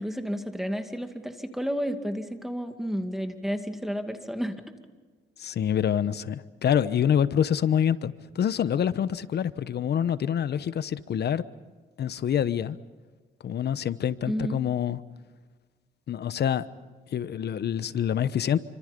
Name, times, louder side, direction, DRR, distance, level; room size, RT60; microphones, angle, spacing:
voice 1, 0.0-4.6 14.3-14.6, equal, ahead, 7 dB, 2.2 m, -31 dB
voice 2, 5.4-11.4 12.0-12.8 13.4-15.0 16.1-16.6 17.1-18.6, left 9 dB, 55° left, 15 dB, 1.0 m, -26 dB
28.0 x 25.5 x 5.3 m, 1.4 s
cardioid pair, 90°, 20 cm